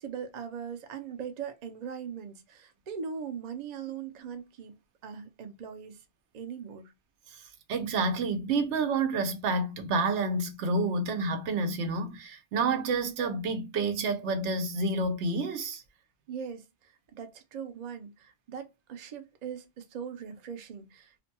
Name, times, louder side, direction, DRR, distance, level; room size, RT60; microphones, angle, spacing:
voice 1, 0.0-4.7 5.0-6.0 6.3-6.9 16.3-21.2, right 7 dB, 50° right, 0.5 m, -40 dB
voice 2, 7.3-15.8, right 3 dB, 85° right, 0.9 m, -29 dB
2.5 x 2.2 x 2.7 m
omnidirectional pair, 1.2 m